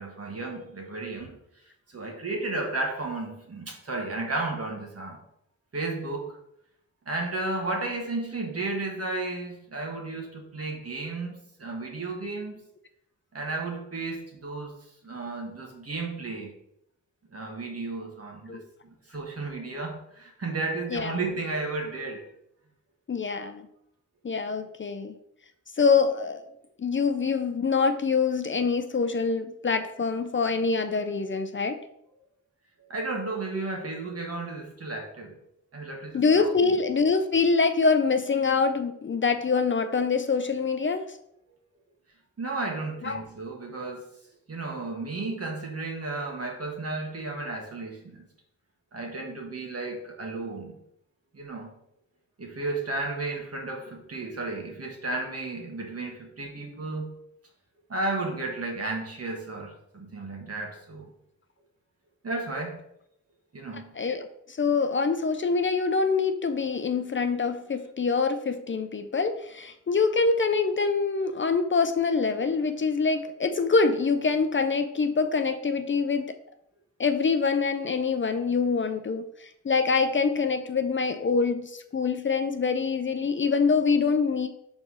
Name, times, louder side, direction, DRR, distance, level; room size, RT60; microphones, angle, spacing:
voice 1, 0.0-1.4 1.9-5.2 5.7-6.4 7.0-12.6 13.3-14.7 15.0-16.5 17.3-22.2 32.8-35.4 35.7-36.7 42.4-44.1 44.5-48.3 48.9-50.7 51.3-51.8 52.4-57.1 57.9-61.1 62.2-62.8 63.5-63.9, right 2 dB, 50° right, 0 dB, 1.7 m, -33 dB
voice 2, 23.1-23.7 24.2-25.1 25.8-26.4 26.8-31.8 36.1-41.1 43.0-43.2 64.0-76.3 77.0-84.5, left 4 dB, 40° left, 8 dB, 0.5 m, -25 dB
4.5 x 4.3 x 5.6 m, 0.77 s
wide cardioid pair, 75°, 30 cm